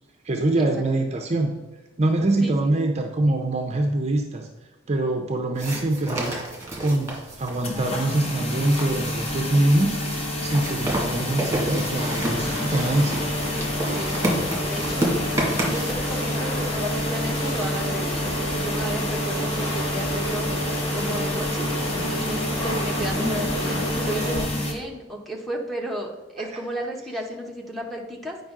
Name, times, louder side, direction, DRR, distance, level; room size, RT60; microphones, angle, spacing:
voice 1, 0.2-1.5 2.0-4.5 4.9-6.4 6.8-10.0 10.4-13.4 26.4-26.5, right 2 dB, 35° right, 3 dB, 0.5 m, -24 dB
sound 1, 5.6-15.9, right 1 dB, 15° right, 1.7 m, -31 dB
sound 2, 7.6-24.7, left 1 dB, 30° left, 1.0 m, -29 dB
sound 3, 11.9-24.4, equal, 60° left, 2.4 m, -30 dB
voice 2, 13.9-14.3 14.6-15.1 15.6-20.5 20.9-21.7 22.2-22.4 22.6-28.4, right 1 dB, ahead, -2 dB, 0.9 m, -33 dB
8.8 x 5.3 x 3.7 m, 1.1 s
head